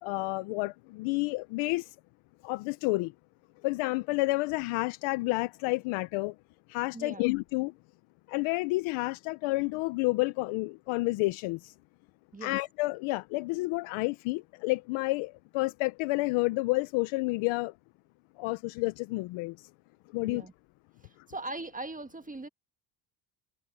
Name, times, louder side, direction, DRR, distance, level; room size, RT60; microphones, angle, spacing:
voice 1, 0.0-1.9 2.4-3.1 3.6-6.3 6.7-7.7 8.3-11.7 12.4-17.7 18.4-19.6 20.1-20.5, left 23 dB, 85° left, 0.9 m, -30 dB
voice 2, 6.9-7.3 12.3-12.6 20.2-20.5 21.3-22.5, right 2 dB, 15° right, 1.5 m, -40 dB
supercardioid pair, 80°, 47 cm